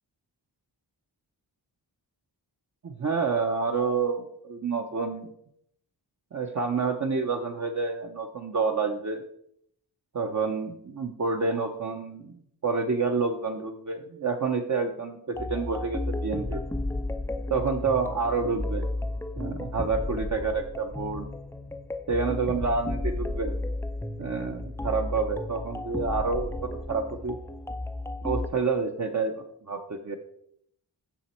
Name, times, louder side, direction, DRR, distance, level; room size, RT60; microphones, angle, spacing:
voice 1, 2.8-5.3 6.3-9.2 10.1-12.4 12.6-16.6 17.5-18.9 19.4-21.3 22.1-23.5 24.2-27.4 28.2-29.3 29.7-30.2, right 4 dB, 40° right, 2 dB, 0.7 m, -28 dB
sound 1, 15.3-28.5, left 2 dB, 5° left, 0.3 m, -33 dB
7.2 x 6.8 x 4.3 m, 0.72 s
wide cardioid pair, 90°, 44 cm